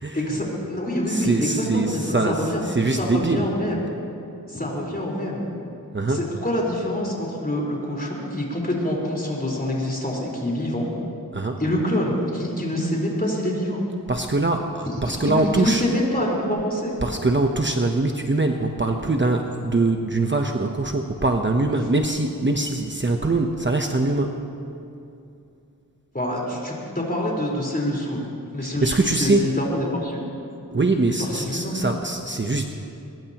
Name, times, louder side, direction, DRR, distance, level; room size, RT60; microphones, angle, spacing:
voice 1, 0.1-2.6 3.0-3.8 4.5-5.4 6.1-10.9 11.6-13.8 15.1-16.9 26.1-28.2 28.5-30.2 31.4-31.8, left 1 dB, 25° left, -3 dB, 4.4 m, -26 dB
voice 2, 1.1-3.5 5.9-6.3 11.3-11.6 14.1-15.8 17.0-24.4 28.6-29.5 30.7-32.7, right 2 dB, 30° right, 3 dB, 0.9 m, -23 dB
22.0 x 21.0 x 3.0 m, 2.7 s
wide cardioid pair, 75°, 35 cm